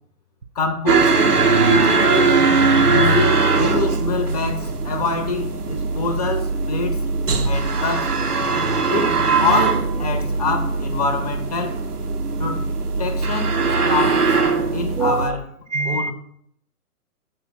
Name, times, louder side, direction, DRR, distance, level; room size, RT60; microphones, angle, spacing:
voice 1, 0.5-1.4 1.7-2.4 2.9-7.0 7.4-8.2 8.9-11.8 12.4-12.7 13.0-14.4 14.7-15.4 15.8-16.1, left 3 dB, 25° left, 0.6 m, -25 dB
sound 1, 0.9-15.3, right 4 dB, 80° right, 0.9 m, -20 dB
voice 2, 15.0-15.4 15.7-16.1, right 4 dB, 50° right, 0.6 m, -23 dB
5.4 x 5.0 x 6.1 m
figure-of-eight pair, 130°, 45 cm